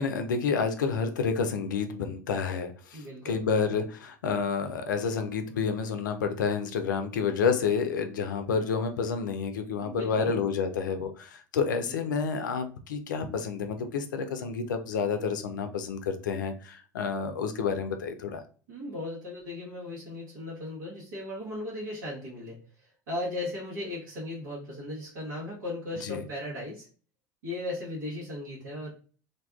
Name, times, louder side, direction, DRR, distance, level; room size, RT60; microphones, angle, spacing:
voice 1, 0.0-18.4 26.0-26.2, left 5 dB, 80° left, 7 dB, 0.4 m, -29 dB
voice 2, 2.9-3.4 9.8-10.4 11.8-12.1 18.7-26.9 27.4-28.9, left 1 dB, 75° right, -6 dB, 1.1 m, -37 dB
2.6 x 2.2 x 2.3 m, 0.39 s
hypercardioid pair, 75°, 10 cm